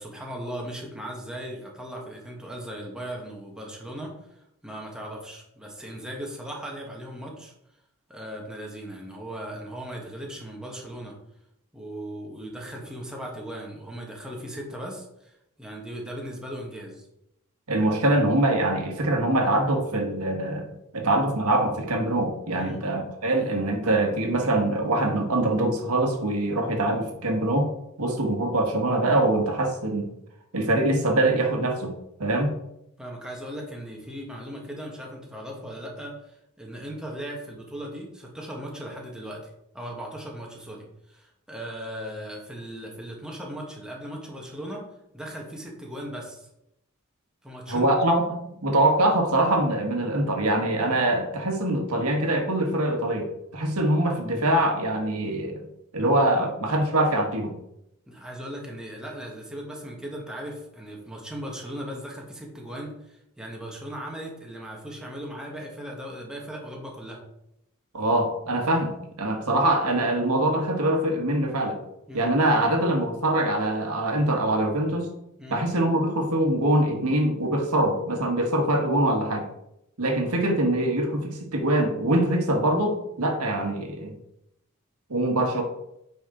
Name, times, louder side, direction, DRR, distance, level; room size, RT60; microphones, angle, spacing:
voice 1, 0.0-7.5 8.1-11.1 11.7-17.1 22.5-22.8 33.0-44.8 45.1-46.5 47.4-47.9 58.1-67.2 72.1-72.3 75.4-75.6, equal, 5° right, -1 dB, 1.5 m, -38 dB
voice 2, 17.7-27.7 28.0-30.1 30.5-32.5 47.7-48.2 48.6-55.7 55.9-57.5 67.9-71.8 72.1-75.1 75.5-79.5 80.0-84.2 85.1-85.6, right 1 dB, 90° right, 3 dB, 1.6 m, -24 dB
8.7 x 5.2 x 3.9 m, 0.82 s
head